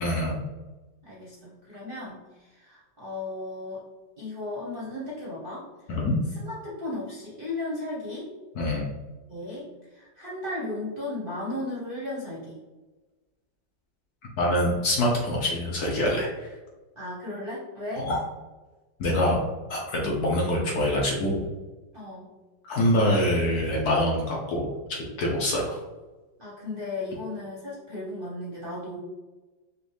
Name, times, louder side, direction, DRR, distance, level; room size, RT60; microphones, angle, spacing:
voice 1, 0.0-0.4 5.9-6.2 8.5-8.9 14.4-16.5 18.0-18.2 19.0-19.4 19.7-21.4 22.6-24.7 25.2-25.8, left 1 dB, 60° left, -2 dB, 1.2 m, -25 dB
voice 2, 1.0-3.8 4.2-5.7 6.3-8.3 9.3-12.6 17.0-18.1 20.0-20.2 21.9-22.3 26.4-29.0, left 2 dB, 40° right, -6 dB, 0.9 m, -35 dB
5.1 x 2.5 x 3.2 m, 1.2 s
omnidirectional pair, 2.0 m